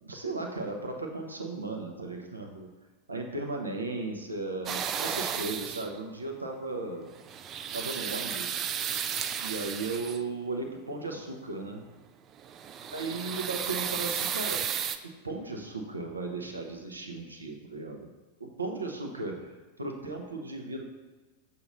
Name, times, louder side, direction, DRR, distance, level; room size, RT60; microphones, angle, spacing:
voice 1, 0.0-2.7 3.1-7.1 7.7-8.6 9.4-11.9 12.9-14.6 15.2-18.1 18.4-20.8, right 3 dB, 75° right, 2 dB, 0.8 m, -36 dB
sound 1, 4.7-6.0 7.1-10.4 12.4-15.0, right 8 dB, 30° right, 0.3 m, -33 dB
6.9 x 2.7 x 5.3 m, 1.3 s
figure-of-eight pair, 90°, 0 cm